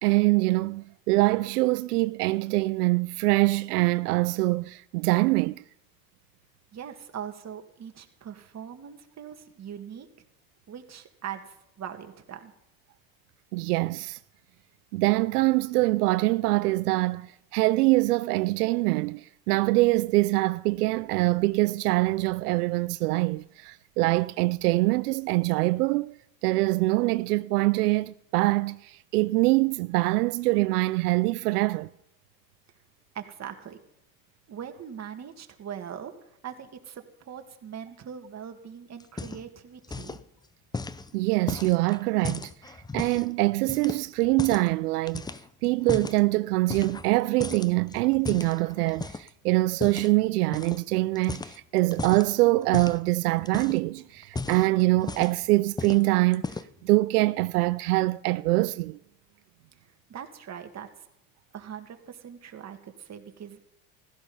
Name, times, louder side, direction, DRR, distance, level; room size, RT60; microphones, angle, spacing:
voice 1, 0.0-5.6 13.5-14.2 14.9-26.1 26.4-31.9 41.1-45.3 45.6-56.4 56.8-59.0, right 20 dB, 85° right, 0.5 m, -24 dB
voice 2, 6.7-10.1 10.7-12.5 33.1-33.8 34.5-36.1 36.4-40.2 60.1-60.9 61.5-63.6, right 8 dB, 35° right, 2.2 m, -41 dB
sound 1, 39.0-39.6 39.8-40.2 40.7-43.3 43.7-44.7 45.1-46.2 46.7-47.1 47.4-49.3 49.8-50.1 50.5-50.8 51.1-52.3 52.7-53.0 53.4-53.9 54.2-55.4 55.8-56.0 56.3-56.8, left 3 dB, 10° left, 0.6 m, -35 dB
15.5 x 14.0 x 5.6 m
supercardioid pair, 95°, 45 cm